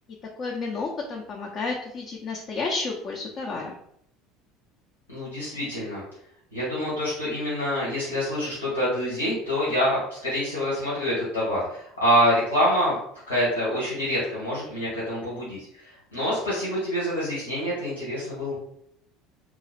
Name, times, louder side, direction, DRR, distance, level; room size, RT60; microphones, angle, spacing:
voice 1, 0.4-3.7, left 3 dB, 45° left, -2 dB, 0.7 m, -31 dB
voice 2, 5.1-6.0 6.5-13.0 13.3-15.7 16.1-18.6, equal, 85° left, -8 dB, 1.4 m, -26 dB
3.0 x 2.3 x 4.3 m, 0.72 s
figure-of-eight pair, 65°, 0 cm